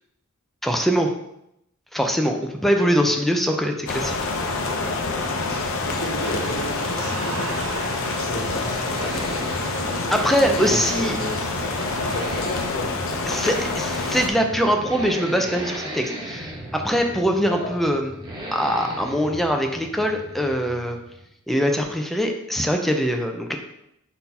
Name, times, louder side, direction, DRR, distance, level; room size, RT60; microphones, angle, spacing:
voice 1, 0.6-1.1 1.9-4.2 10.1-11.2 13.3-18.1 18.5-21.0 21.5-23.6, equal, ahead, 3 dB, 0.5 m, -22 dB
sound 1, 3.4-21.4, right 1 dB, 20° right, 1.1 m, -37 dB
sound 2, 3.9-14.3, left 3 dB, 65° left, 0.7 m, -27 dB
voice 2, 5.4-9.4 10.4-11.7 12.0-13.2 17.5-17.7, left 1 dB, 50° left, 0 dB, 1.4 m, -33 dB
sound 3, 6.2-12.3, right 5 dB, 65° right, 0.5 m, -38 dB
4.2 x 4.2 x 5.4 m, 0.80 s
head